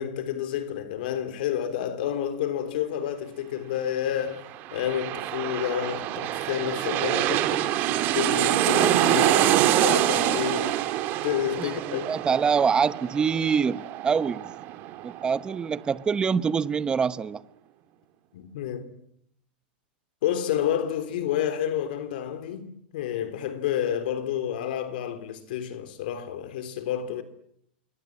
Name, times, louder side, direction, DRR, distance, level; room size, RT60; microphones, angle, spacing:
voice 1, 0.0-10.8 11.2-12.1 18.3-19.0 20.2-27.2, left 10 dB, 65° left, 3.4 m, -30 dB
sound 1, 4.4-15.7 16.1-16.2, right 13 dB, 40° right, 2.8 m, -26 dB
voice 2, 11.6-14.4 15.0-17.4, right 6 dB, 15° right, 1.0 m, -25 dB
29.0 x 23.0 x 7.6 m
hypercardioid pair, 130°, 5 cm